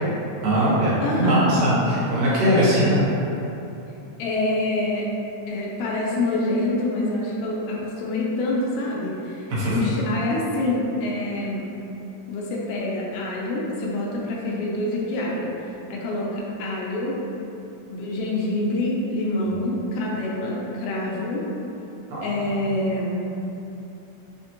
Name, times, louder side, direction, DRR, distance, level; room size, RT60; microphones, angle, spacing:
voice 1, 0.4-3.0 9.5-9.8 22.1-22.3, equal, 85° right, -9 dB, 2.5 m, -20 dB
voice 2, 1.0-1.4 4.2-5.1 5.5-9.4 9.7-11.7 12.3-15.5 15.9-17.2 17.9-21.4 22.2-23.2, left 2 dB, 85° left, -4 dB, 1.3 m, -26 dB
5.0 x 2.1 x 2.9 m, 2.9 s
omnidirectional pair, 3.4 m